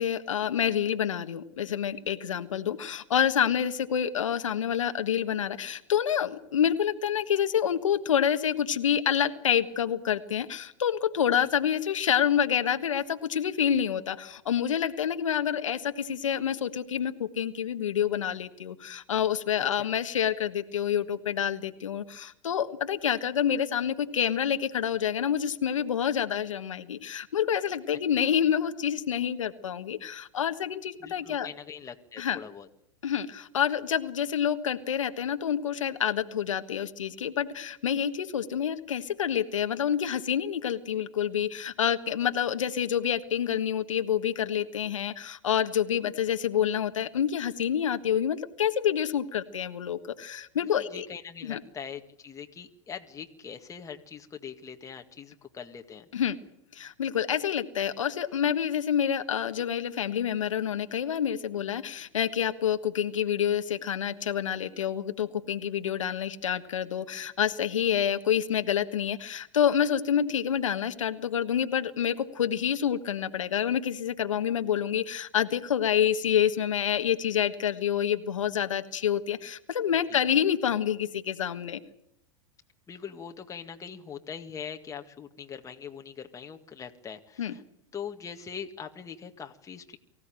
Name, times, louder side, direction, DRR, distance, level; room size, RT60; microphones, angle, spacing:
voice 1, 0.0-31.5 32.2-32.4 33.0-51.0 51.4-51.6 56.1-56.4 56.7-81.8 87.4-87.5, left 9 dB, 90° left, 8 dB, 1.5 m, -28 dB
voice 2, 31.0-32.7 50.6-56.1 80.1-80.2 82.9-87.6 87.9-90.0, left 7 dB, 20° left, 5 dB, 2.0 m, -42 dB
23.5 x 16.0 x 9.0 m, 0.76 s
hypercardioid pair, 110°, 16 cm